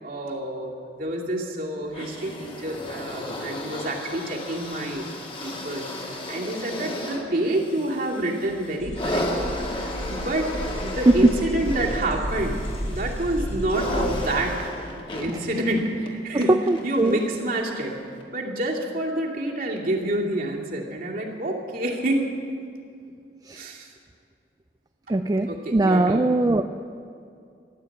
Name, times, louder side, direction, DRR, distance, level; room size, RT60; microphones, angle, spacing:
voice 1, 0.0-5.0 5.4-10.5 10.8-12.6 12.9-14.7 15.0-16.5 16.8-17.9 18.3-22.3 23.5-23.9 25.5-26.3, right 1 dB, 55° right, -1 dB, 2.5 m, -28 dB
sound 1, 1.9-17.4 18.2-18.3, left 1 dB, 30° left, 1.9 m, -34 dB
sound 2, 8.8-14.4, equal, 65° left, 4.5 m, -32 dB
voice 2, 16.3-17.2 23.5-23.6 25.1-26.6, right 2 dB, 20° right, 8 dB, 0.4 m, -20 dB
14.5 x 11.5 x 8.5 m, 2.3 s
head